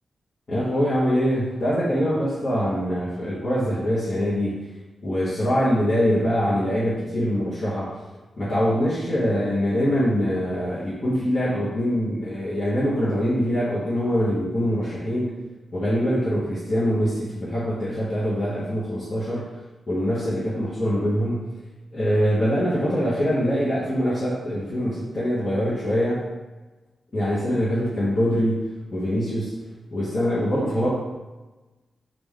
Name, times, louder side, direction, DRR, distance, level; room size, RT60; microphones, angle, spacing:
voice 1, 0.5-4.6 5.0-7.9 8.4-15.4 15.7-19.5 19.9-21.5 21.9-26.2 27.1-29.6 29.9-30.9, equal, 40° left, -11 dB, 1.0 m, -23 dB
3.3 x 2.4 x 3.6 m, 1.2 s
wide cardioid pair, 105°, 0 cm